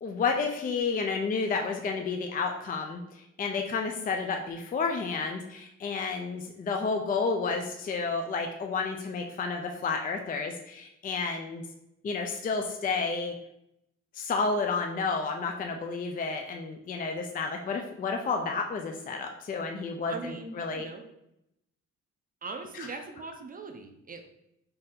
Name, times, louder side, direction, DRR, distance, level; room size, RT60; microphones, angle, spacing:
voice 1, 0.0-11.6 12.0-13.3 14.1-20.9, left 4 dB, 30° left, 3 dB, 0.4 m, -31 dB
voice 2, 20.1-21.0 22.4-24.2, right 3 dB, 30° right, 4 dB, 0.5 m, -40 dB
4.1 x 2.6 x 3.7 m, 0.81 s
wide cardioid pair, 140°, 29 cm